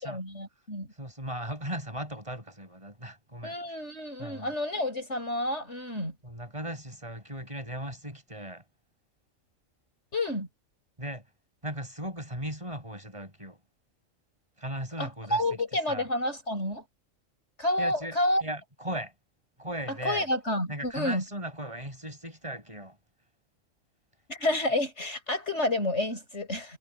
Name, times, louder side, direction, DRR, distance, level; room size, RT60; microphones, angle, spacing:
voice 1, 0.0-0.9 3.4-6.1 10.1-10.5 15.0-16.8 17.6-18.4 19.9-21.2 24.3-26.8, left 1 dB, 60° left, 8.3 m, -29 dB
voice 2, 1.0-3.6 4.2-4.5 6.2-8.6 11.0-11.2 11.6-13.6 14.6-15.6 15.9-16.1 17.8-19.1 19.6-20.3 20.7-23.0, right 1 dB, 25° right, 7.0 m, -37 dB
omnidirectional pair, 1.3 m